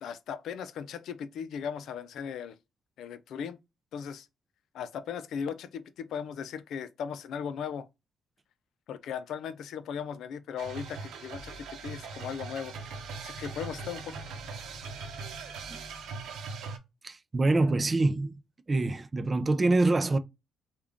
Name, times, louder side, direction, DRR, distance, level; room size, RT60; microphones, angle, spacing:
voice 1, 0.0-2.6 3.0-3.6 3.9-4.3 4.7-7.9 8.9-12.8 13.2-14.2, left 7 dB, 75° left, 0.4 m, -37 dB
sound 1, 10.6-16.8, right 4 dB, 85° right, 0.8 m, -40 dB
voice 2, 17.0-18.3 18.7-20.2, right 2 dB, 25° right, 0.4 m, -25 dB
3.6 x 2.3 x 3.4 m
cardioid pair, 95°, 0 cm